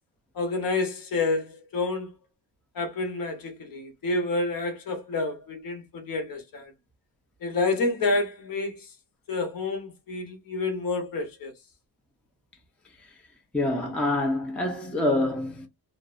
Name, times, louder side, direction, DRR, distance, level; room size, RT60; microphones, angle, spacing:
voice 1, 0.3-2.1 2.7-6.7 7.4-8.9 9.3-11.5, left 3 dB, 50° left, 0.9 m, -29 dB
voice 2, 13.5-15.7, left 2 dB, 5° left, 0.4 m, -26 dB
2.5 x 2.0 x 2.4 m
cardioid pair, 125°, 42 cm